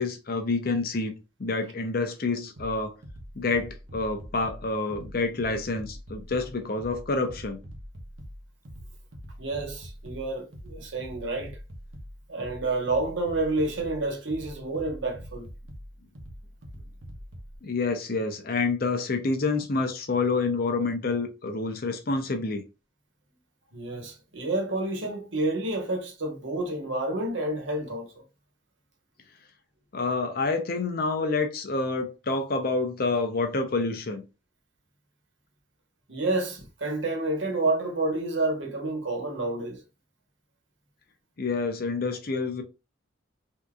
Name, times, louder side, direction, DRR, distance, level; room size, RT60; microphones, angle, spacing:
voice 1, 0.0-3.0 3.3-7.6 17.6-22.6 29.9-34.2 41.4-42.6, left 3 dB, 50° left, 0.6 m, -28 dB
sound 1, 2.6-17.6, equal, 85° right, 0.9 m, -44 dB
voice 2, 9.4-11.6 12.3-15.5 23.7-28.2 36.1-39.8, right 2 dB, 70° right, 1.1 m, -29 dB
3.5 x 2.8 x 2.3 m
head